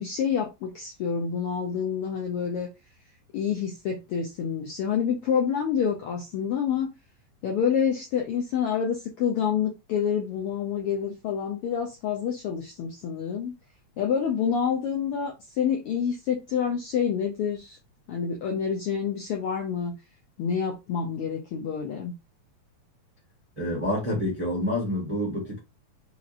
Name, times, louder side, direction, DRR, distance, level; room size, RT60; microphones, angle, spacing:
voice 1, 0.0-2.7 3.3-6.9 7.4-13.5 14.0-17.8 18.1-19.9 20.4-22.1, left 7 dB, 75° left, 1.3 m, -28 dB
voice 2, 23.6-25.6, left 1 dB, 30° right, 0.6 m, -28 dB
5.0 x 2.9 x 2.5 m
omnidirectional pair, 3.3 m